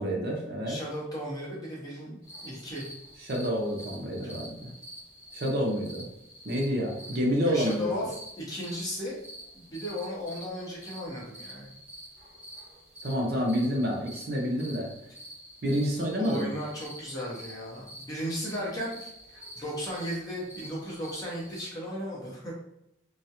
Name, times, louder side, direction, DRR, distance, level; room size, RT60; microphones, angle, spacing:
voice 1, 0.0-0.8 3.2-4.7 5.3-6.1 6.4-7.9 13.0-14.9 15.6-16.5, equal, 50° right, 0 dB, 0.5 m, -28 dB
voice 2, 0.7-2.2 2.4-2.8 7.4-8.1 8.4-9.2 9.5-11.7 16.2-22.5, equal, 20° left, -5 dB, 0.7 m, -35 dB
sound 1, 2.2-21.7, equal, 25° right, 1.1 m, -47 dB
2.3 x 2.0 x 2.7 m, 0.81 s
head